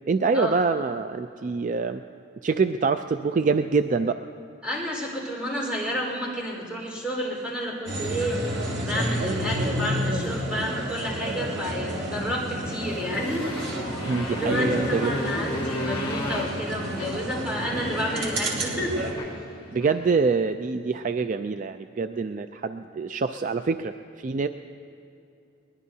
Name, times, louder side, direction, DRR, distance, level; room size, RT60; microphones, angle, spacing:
voice 1, 0.1-2.0 2.4-4.2 14.1-15.1 17.7-17.8 19.7-24.5, right 4 dB, 40° right, 9 dB, 0.3 m, -25 dB
voice 2, 4.6-13.5 13.7-19.0, equal, 5° right, -3 dB, 4.4 m, -30 dB
sound 1, 7.9-19.1, right 1 dB, 85° right, 3.1 m, -30 dB
Motorcycle, 12.7-20.1, left 1 dB, 30° left, 2.8 m, -35 dB
22.5 x 20.0 x 2.8 m, 2.7 s
head